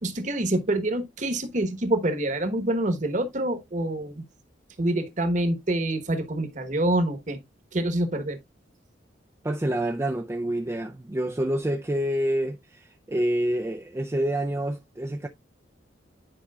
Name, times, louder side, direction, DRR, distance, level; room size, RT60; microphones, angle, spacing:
voice 1, 0.0-4.2 4.8-7.4 7.7-8.4, right 1 dB, 40° right, 1.1 m, -26 dB
voice 2, 9.4-15.3, right 1 dB, 15° right, 0.4 m, -27 dB
10.0 x 5.1 x 2.3 m
head